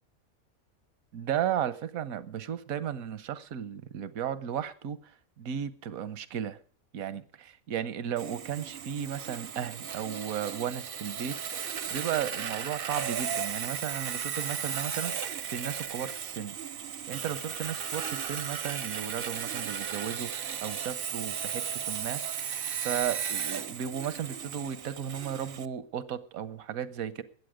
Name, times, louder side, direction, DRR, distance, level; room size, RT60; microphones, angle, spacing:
voice 1, 1.1-5.0 5.4-6.6 6.9-16.5 17.1-22.2 22.8-27.2, right 9 dB, 80° right, 1.4 m, -35 dB
Sawing, 8.2-25.7, right 7 dB, 50° right, 0.8 m, -35 dB
21.5 x 8.5 x 5.0 m
omnidirectional pair, 1.5 m